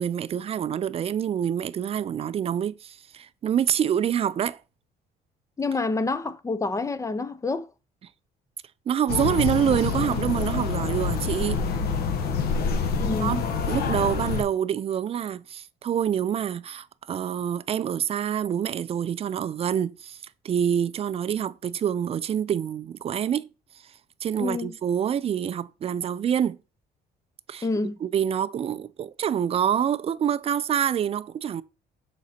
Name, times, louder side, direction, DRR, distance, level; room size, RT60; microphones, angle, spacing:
voice 1, 0.0-4.6 8.9-11.6 13.2-20.2 20.4-23.5 24.2-26.6 27.5-27.6 28.0-31.6, right 9 dB, 35° right, 0.4 m, -26 dB
voice 2, 5.6-7.7 13.0-13.4 24.4-24.8 27.6-28.0, left 3 dB, 20° left, 0.5 m, -28 dB
sound 1, 9.1-14.4, left 5 dB, 65° left, 1.0 m, -26 dB
6.0 x 4.0 x 4.2 m
cardioid pair, 110°, 17 cm